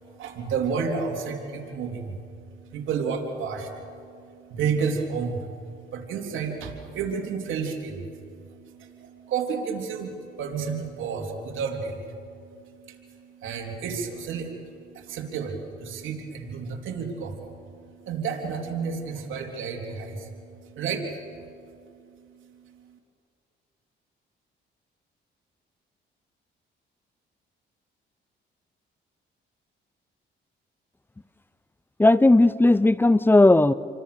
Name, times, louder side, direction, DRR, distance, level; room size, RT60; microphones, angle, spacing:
voice 1, 0.0-23.0, right 5 dB, 80° right, 2 dB, 3.4 m, -32 dB
voice 2, 32.0-33.7, left 2 dB, 10° left, 16 dB, 0.7 m, -16 dB
28.5 x 23.5 x 6.9 m, 2.5 s
cardioid pair, 90°, 20 cm